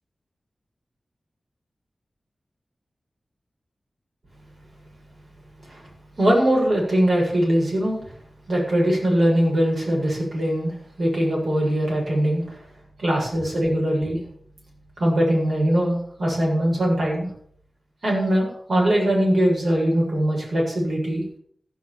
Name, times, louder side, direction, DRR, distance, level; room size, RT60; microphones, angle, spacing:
voice 1, 6.2-8.0 8.5-10.7 11.0-12.6 13.0-14.2 15.0-17.3 18.0-21.2, equal, 60° right, -3 dB, 7.4 m, -21 dB
15.0 x 6.2 x 7.5 m, 0.62 s
wide cardioid pair, 100°, 0 cm